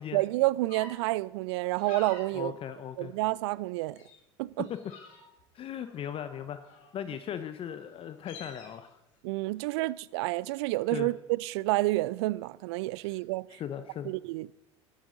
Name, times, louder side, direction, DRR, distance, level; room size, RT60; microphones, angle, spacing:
voice 1, 0.1-2.5 3.0-4.0 4.4-4.7 9.2-13.5 14.0-14.5, right 19 dB, 65° right, 0.4 m, -29 dB
sound 1, 0.7-0.9 1.6-2.3 2.8-3.6 3.9-4.2 4.6-5.4 5.8-7.0 7.6-7.7 8.0-8.7, left 4 dB, 55° left, 3.5 m, -49 dB
voice 2, 2.3-3.1 4.7-4.8 5.5-6.6 6.9-9.0 10.9-11.1 13.0-13.2 13.5-14.1, left 9 dB, 40° left, 0.7 m, -38 dB
12.5 x 10.5 x 3.9 m
hypercardioid pair, 75°, 15 cm